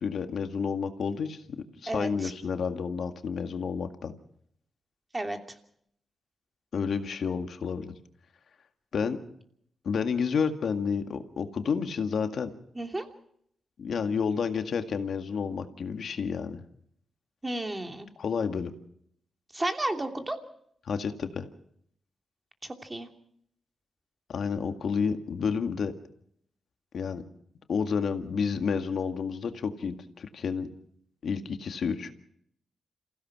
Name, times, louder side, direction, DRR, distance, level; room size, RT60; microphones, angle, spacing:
voice 1, 0.0-1.4 1.8-4.1 6.7-7.9 8.9-9.2 9.8-12.5 13.8-16.6 18.2-18.7 20.9-21.5 24.3-25.9 26.9-27.2 27.7-30.7 31.2-32.1, left 6 dB, 70° left, 7 dB, 1.9 m, -30 dB
voice 2, 1.9-2.3 5.1-5.4 12.7-13.1 17.4-18.1 19.5-20.4 22.6-23.1, right 1 dB, 20° right, 5 dB, 2.9 m, -32 dB
27.0 x 16.0 x 6.1 m, 0.69 s
cardioid pair, 65°, 0 cm